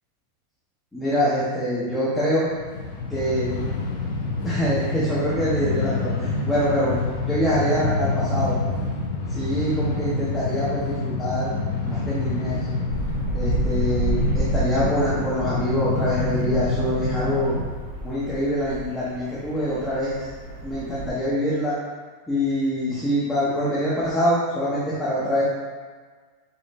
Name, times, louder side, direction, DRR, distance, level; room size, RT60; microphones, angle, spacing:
voice 1, 0.9-2.5 3.1-3.5 4.4-7.0 7.3-8.6 9.3-11.5 11.8-12.6 13.3-17.5 18.0-20.3 20.6-21.7 22.3-25.4, equal, 5° left, -10 dB, 0.7 m, -24 dB
Train, 2.4-17.6, left 3 dB, 70° left, 0.9 m, -27 dB
sound 1, 12.9-21.1, right 1 dB, 60° right, 1.0 m, -30 dB
5.1 x 2.5 x 4.1 m, 1.5 s
supercardioid pair, 180°, 0 cm